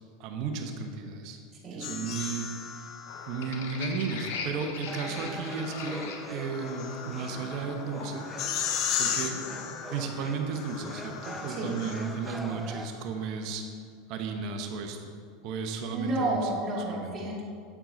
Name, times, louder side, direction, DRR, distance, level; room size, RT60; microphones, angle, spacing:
voice 1, 0.2-1.4 1.7-2.9 3.3-8.2 9.0-13.6 14.1-15.1 15.4-16.4 16.9-17.2, right 5 dB, 55° right, 4 dB, 1.1 m, -34 dB
voice 2, 1.6-2.1 11.5-11.8 15.9-17.4, right 2 dB, 30° right, -4 dB, 2.7 m, -31 dB
sound 1, 1.8-3.8 5.2-12.4, left 8 dB, 50° left, 1.0 m, -36 dB
sound 2, 3.1-12.8, left 4 dB, 70° left, 1.4 m, -43 dB
sound 3, 4.9-12.9, right 1 dB, 5° right, 0.7 m, -43 dB
8.8 x 8.7 x 4.0 m, 2.1 s
hypercardioid pair, 85°, 0 cm